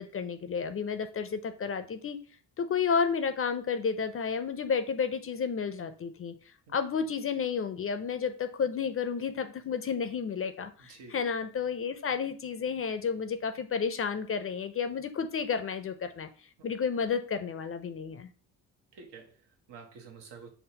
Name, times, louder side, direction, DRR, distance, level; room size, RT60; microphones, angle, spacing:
voice 1, 0.0-2.2 2.6-6.3 6.7-16.3 16.6-18.3, left 6 dB, 35° left, 0.4 m, -31 dB
voice 2, 18.9-20.5, right 5 dB, 85° right, 0.9 m, -49 dB
5.6 x 2.0 x 2.7 m
cardioid pair, 80°, 40 cm